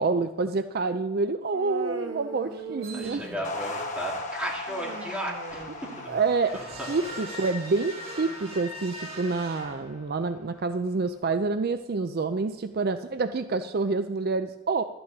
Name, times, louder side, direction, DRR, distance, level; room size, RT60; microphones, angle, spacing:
voice 1, 0.0-3.2 6.1-14.8, right 4 dB, 50° right, 10 dB, 0.4 m, -27 dB
Human voice, 1.5-3.8 4.7-6.5, right 3 dB, 85° right, 1.4 m, -40 dB
sound 1, 2.8-3.5 6.4-10.3, equal, 30° right, 2.5 m, -41 dB
voice 2, 2.9-6.1 6.5-7.0, equal, 5° right, -3 dB, 2.7 m, -35 dB
sound 2, 3.4-9.9, left 2 dB, 35° left, 1.4 m, -39 dB
12.0 x 6.8 x 8.7 m, 1.1 s
head